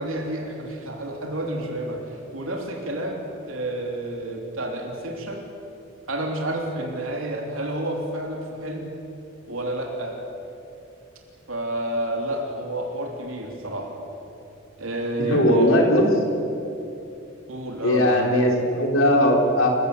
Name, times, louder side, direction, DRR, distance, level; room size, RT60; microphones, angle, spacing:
voice 1, 0.0-5.5 6.1-8.9 9.5-10.2 11.5-13.9 14.8-15.7 17.5-18.4, right 1 dB, 75° right, 1 dB, 3.1 m, -30 dB
voice 2, 15.3-16.1 17.8-19.7, left 1 dB, 70° left, 1 dB, 3.9 m, -19 dB
27.5 x 16.0 x 8.3 m, 2.8 s
head